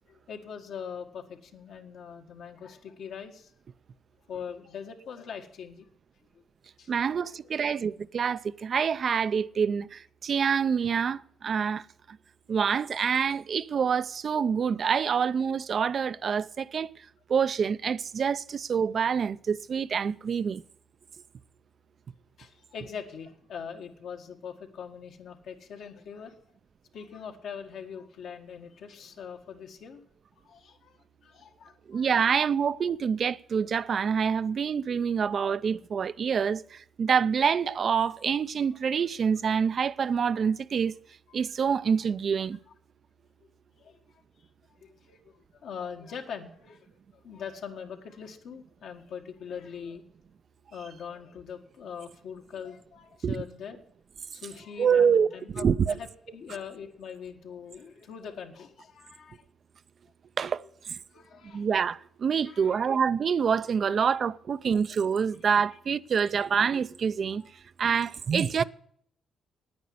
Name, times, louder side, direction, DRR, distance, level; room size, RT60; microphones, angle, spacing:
voice 1, 0.1-3.5 4.3-5.9 6.3-6.4 6.8-6.9 7.2-7.4 22.4-26.4 26.9-30.0 30.4-31.0 31.2-32.1 41.3-41.4 43.8-44.0 44.8-46.9 47.2-50.0 50.7-53.8 54.3-59.4 61.1-61.7 62.4-63.0 64.0-64.2 67.3-67.5 68.6-68.7, left 7 dB, 70° left, 1.7 m, -42 dB
voice 2, 6.9-11.8 12.1-12.2 12.5-16.9 17.3-20.6 31.9-41.0 41.3-42.6 53.2-53.4 54.8-55.9 60.4-61.0 61.5-67.4 67.8-68.6, right 6 dB, 50° right, 0.5 m, -26 dB
9.5 x 9.4 x 7.7 m
cardioid pair, 90°, 0 cm